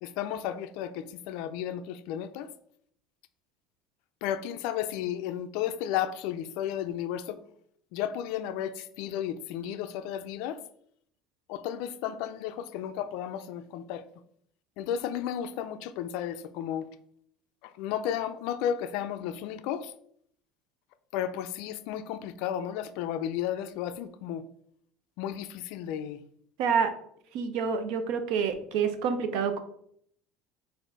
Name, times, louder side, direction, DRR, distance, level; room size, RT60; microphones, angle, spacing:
voice 1, 0.0-2.5 4.2-7.4 7.9-10.6 11.5-14.0 14.8-16.9 17.6-19.9 21.1-24.4 25.2-26.2, left 10 dB, 65° left, 0.3 m, -33 dB
voice 2, 26.6-26.9 27.3-29.6, right 6 dB, 60° right, 0.6 m, -27 dB
4.5 x 2.5 x 4.5 m
cardioid pair, 175°, 0 cm